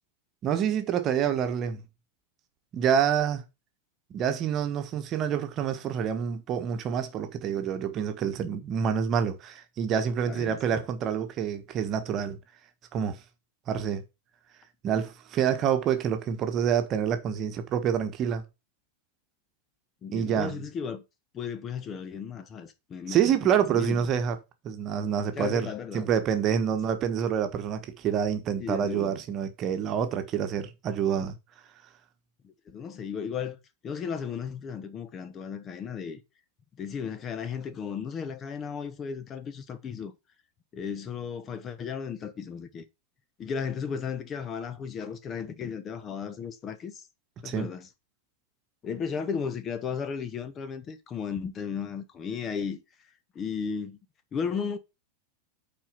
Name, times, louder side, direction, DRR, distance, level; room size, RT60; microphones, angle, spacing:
voice 1, 0.4-1.8 2.7-3.4 4.1-12.4 12.9-13.2 13.7-14.0 14.8-18.4 20.1-20.6 23.1-24.4 24.6-25.7 25.9-31.4 47.4-47.7, right 8 dB, 30° right, 1.3 m, -27 dB
voice 2, 10.3-10.8 20.0-21.0 21.3-24.0 25.3-26.1 28.6-29.2 32.4-33.6 33.8-36.2 36.8-40.1 40.7-42.8 43.4-47.1 47.4-47.9 48.8-52.8 53.3-54.0 54.3-54.8, left 6 dB, 25° left, 1.1 m, -35 dB
8.9 x 4.5 x 5.6 m
figure-of-eight pair, 90°, 0 cm